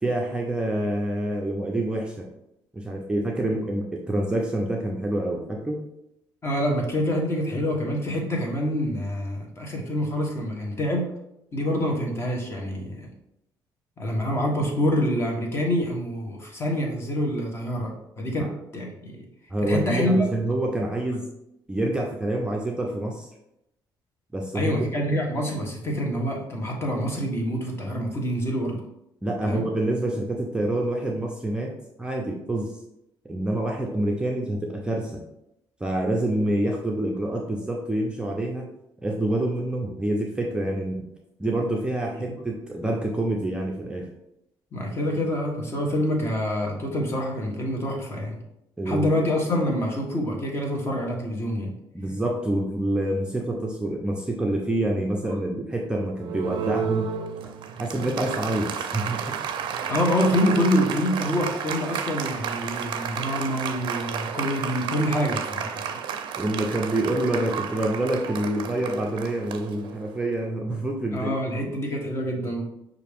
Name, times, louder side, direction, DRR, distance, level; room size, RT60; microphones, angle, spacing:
voice 1, 0.0-2.3 2.7-5.8 18.4-18.5 19.5-21.3 21.7-23.3 24.3-24.7 29.2-32.8 33.2-35.2 35.8-38.7 39.0-41.1 41.4-44.1 48.8-49.2 51.9-57.1 57.4-57.5 57.8-59.2 66.4-71.3, right 1 dB, 10° right, -1 dB, 0.5 m, -27 dB
voice 2, 6.4-11.1 11.5-13.1 14.0-19.2 19.7-20.3 24.5-28.8 29.4-29.7 42.1-42.3 44.7-48.4 48.8-51.7 59.9-66.0 71.1-72.6, equal, 30° left, 0 dB, 1.1 m, -26 dB
Applause, 56.2-70.3, right 7 dB, 65° right, 0.4 m, -32 dB
5.8 x 2.5 x 3.5 m, 0.84 s
cardioid pair, 120°, 9 cm